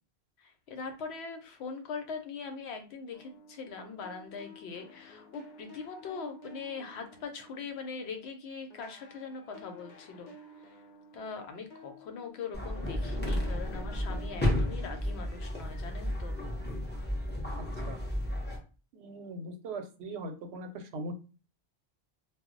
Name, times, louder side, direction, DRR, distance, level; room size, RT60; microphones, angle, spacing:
voice 1, 0.4-10.3 11.1-16.4, left 5 dB, 85° left, 5 dB, 0.9 m, -41 dB
sound 1, 3.1-8.3 8.7-16.4, left 1 dB, 55° left, 0.6 m, -53 dB
sound 2, 12.5-18.6, left 1 dB, 15° left, 0.5 m, -32 dB
voice 2, 17.6-18.1 18.9-21.1, right 2 dB, 85° right, 6 dB, 0.8 m, -40 dB
2.2 x 2.0 x 3.7 m, 0.34 s
omnidirectional pair, 1.1 m